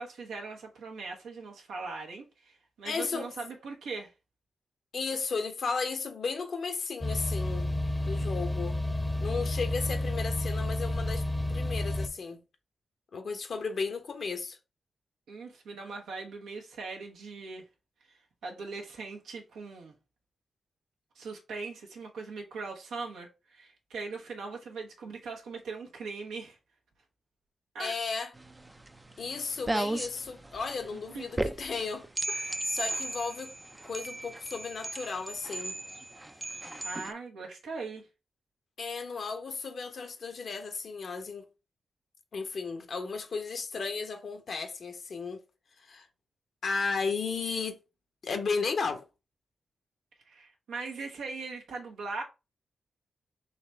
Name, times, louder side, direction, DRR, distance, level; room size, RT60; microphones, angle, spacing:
voice 1, 0.0-4.1 15.3-17.7 18.1-19.9 21.1-26.6 27.7-28.0 30.9-31.3 36.8-38.1 50.3-52.2, right 4 dB, 85° right, 1.0 m, -40 dB
voice 2, 2.8-3.3 4.9-7.7 8.1-8.8 9.2-12.4 13.1-14.6 27.8-28.3 29.2-33.5 33.8-35.8 36.4-36.6 38.8-41.5 42.3-45.4 45.8-46.1 46.6-47.8 48.2-49.0, left 4 dB, 65° left, 0.9 m, -34 dB
sound 1, 7.0-12.1, left 1 dB, 10° left, 0.7 m, -30 dB
sound 2, 28.3-37.1, right 1 dB, 20° right, 0.4 m, -36 dB
4.0 x 3.1 x 3.4 m
supercardioid pair, 45°, 0 cm